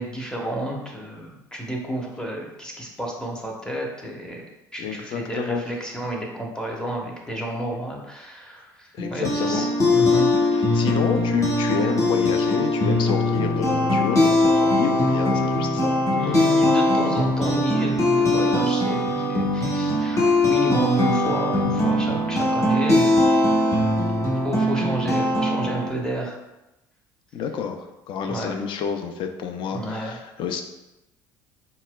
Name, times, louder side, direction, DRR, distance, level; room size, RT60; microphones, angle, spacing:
voice 1, 0.0-4.4 4.7-10.3 15.9-23.9 24.4-26.4 28.3-28.6 29.7-30.2, right 1 dB, 5° left, -1 dB, 0.8 m, -31 dB
voice 2, 4.8-5.6 8.9-9.7 10.5-16.4 27.3-30.6, left 6 dB, 55° left, 5 dB, 0.4 m, -29 dB
sound 1, 9.0-25.9, left 1 dB, 30° left, 1.0 m, -21 dB
4.1 x 2.1 x 2.2 m, 0.97 s
hypercardioid pair, 65°, 10 cm